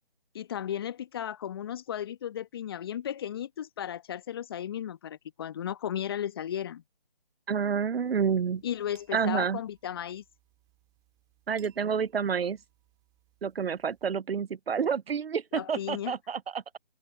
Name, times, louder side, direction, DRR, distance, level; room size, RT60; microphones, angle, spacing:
voice 1, 0.3-6.8 8.6-10.2 15.5-16.1, left 10 dB, 25° left, 1.4 m, -35 dB
voice 2, 7.5-8.6 9.1-9.6 11.5-12.6 13.4-16.8, right 6 dB, 85° right, 0.5 m, -29 dB
sound 1, 8.0-14.2, right 19 dB, 10° right, 3.9 m, -66 dB
figure-of-eight pair, 150°, 29 cm